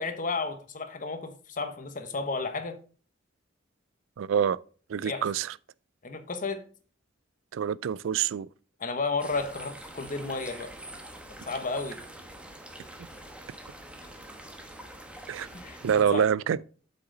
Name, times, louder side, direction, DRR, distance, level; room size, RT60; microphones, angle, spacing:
voice 1, 0.0-2.8 5.0-5.3 6.0-6.6 8.8-10.7 11.5-12.0 15.5-15.8 16.1-16.3, left 4 dB, 45° left, 1.1 m, -32 dB
voice 2, 4.2-4.6 4.9-5.5 7.5-8.5 15.3-15.5 15.8-16.6, right 8 dB, 85° right, 0.3 m, -26 dB
sound 1, 9.2-16.0, right 1 dB, 5° right, 1.1 m, -45 dB
8.1 x 5.7 x 3.8 m
head